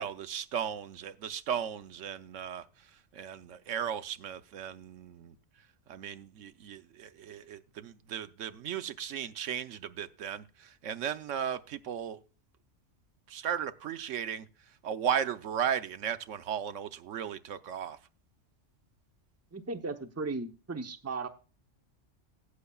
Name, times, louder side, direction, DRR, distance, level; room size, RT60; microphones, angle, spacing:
voice 1, 0.0-2.6 3.1-5.3 5.9-12.2 13.3-14.5 14.8-18.0, right 9 dB, 80° right, 1.1 m, -36 dB
voice 2, 19.5-21.3, right 3 dB, 15° right, 0.7 m, -36 dB
16.5 x 8.5 x 2.3 m
omnidirectional pair, 1.3 m